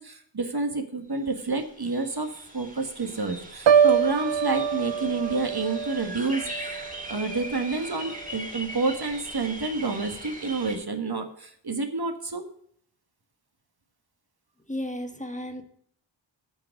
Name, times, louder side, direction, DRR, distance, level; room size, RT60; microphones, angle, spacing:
voice 1, 0.0-6.8 7.1-12.4, right 3 dB, 55° right, 6 dB, 1.4 m, -29 dB
sound 1, 1.1-1.2 1.4-10.8, right 1 dB, 15° right, 2.2 m, -40 dB
Piano, 3.7-7.6 8.0-8.4, right 7 dB, 75° right, 0.6 m, -25 dB
voice 2, 14.7-15.6, left 1 dB, 15° left, 5 dB, 1.4 m, -33 dB
8.8 x 6.3 x 6.4 m, 0.65 s
wide cardioid pair, 55°, 45 cm